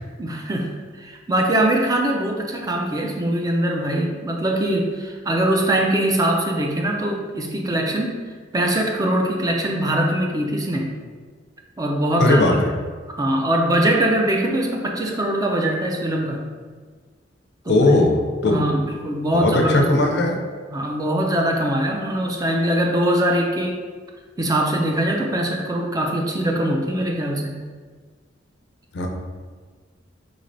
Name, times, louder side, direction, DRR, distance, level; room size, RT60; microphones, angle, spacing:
voice 1, 0.2-0.7 1.0-8.2 8.5-10.9 11.8-12.6 13.1-16.5 17.7-18.0 18.4-19.9 20.7-23.8 24.4-27.6, right 1 dB, 20° right, 0 dB, 0.3 m, -22 dB
voice 2, 12.2-12.5 17.7-18.6 19.3-20.4 28.9-29.1, left 2 dB, 60° left, 2 dB, 0.4 m, -18 dB
3.9 x 3.1 x 2.6 m, 1.5 s
head